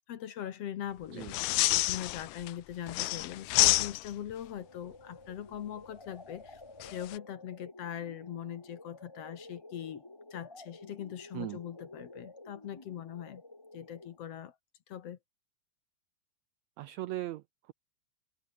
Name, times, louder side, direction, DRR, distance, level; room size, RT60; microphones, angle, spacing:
voice 1, 0.0-10.0 10.3-13.4 13.7-14.6 14.9-15.2, left 10 dB, 60° left, 1.8 m, -41 dB
sound 1, 1.2-2.5 2.9-4.3 6.8-7.2, left 19 dB, 80° left, 2.0 m, -28 dB
sound 2, 4.4-14.4, left 2 dB, 30° left, 0.4 m, -51 dB
voice 2, 16.8-17.7, right 16 dB, 80° right, 1.6 m, -39 dB
omnidirectional pair, 3.9 m